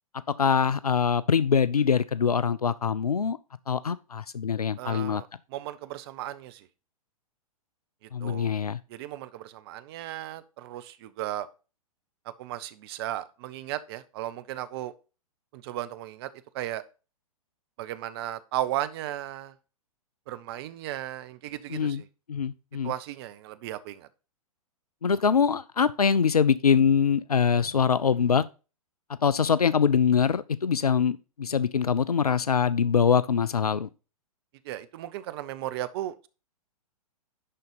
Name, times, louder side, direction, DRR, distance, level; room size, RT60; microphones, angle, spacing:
voice 1, 0.3-3.4 3.7-5.2 8.1-8.8 21.7-22.0 22.3-22.9 25.0-28.4 29.2-33.9, left 6 dB, 90° left, 0.4 m, -23 dB
voice 2, 4.8-6.7 8.2-8.5 8.9-11.5 12.4-14.9 15.5-16.3 16.5-16.8 17.8-19.5 20.3-22.1 22.8-24.1 34.6-36.3, right 13 dB, 40° right, 0.7 m, -35 dB
11.0 x 4.0 x 5.2 m
figure-of-eight pair, 110°, 19 cm